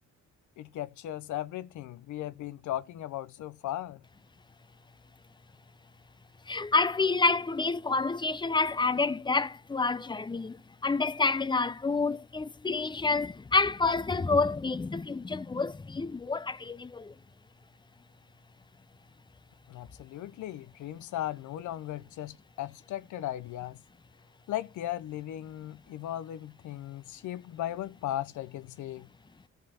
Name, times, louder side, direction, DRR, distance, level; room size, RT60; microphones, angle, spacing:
voice 1, 0.6-4.0 19.7-23.8 24.5-29.1, left 13 dB, 75° left, 0.7 m, -37 dB
voice 2, 6.5-17.1, left 3 dB, 15° left, 0.5 m, -28 dB
15.0 x 5.3 x 4.2 m
cardioid pair, 90°, 30 cm